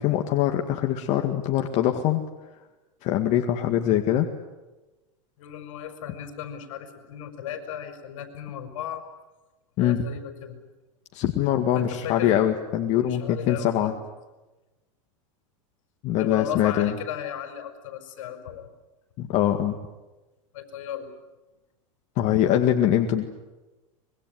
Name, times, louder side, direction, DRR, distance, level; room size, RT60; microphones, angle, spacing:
voice 1, 0.0-2.2 3.0-4.3 9.8-10.0 11.1-13.9 16.0-16.9 19.2-19.8 22.2-23.2, left 11 dB, 45° left, 4 dB, 2.0 m, -23 dB
voice 2, 5.4-9.0 9.8-10.6 11.8-12.4 13.0-14.0 16.2-18.7 20.5-21.1, left 10 dB, 75° left, 7 dB, 5.2 m, -35 dB
25.0 x 23.0 x 9.4 m, 1.1 s
supercardioid pair, 125°, 17 cm